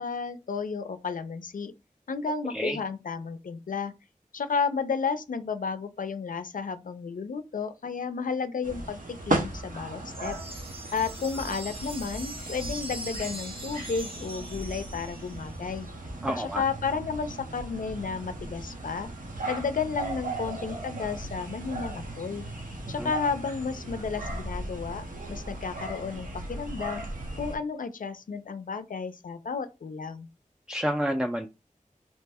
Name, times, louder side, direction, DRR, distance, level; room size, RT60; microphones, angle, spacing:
voice 1, 0.0-1.7 2.1-3.9 4.3-10.4 10.9-15.9 16.4-19.1 19.4-22.5 22.9-27.0 27.4-30.3, left 5 dB, 90° left, 0.4 m, -32 dB
sound 1, 8.6-27.6, right 2 dB, 85° right, 0.8 m, -37 dB
sound 2, 10.1-15.6, right 1 dB, 40° right, 0.7 m, -41 dB
voice 2, 16.2-16.6 23.0-23.1 30.7-31.5, equal, 5° right, 0.3 m, -29 dB
2.8 x 2.1 x 3.4 m
wide cardioid pair, 45°, 14 cm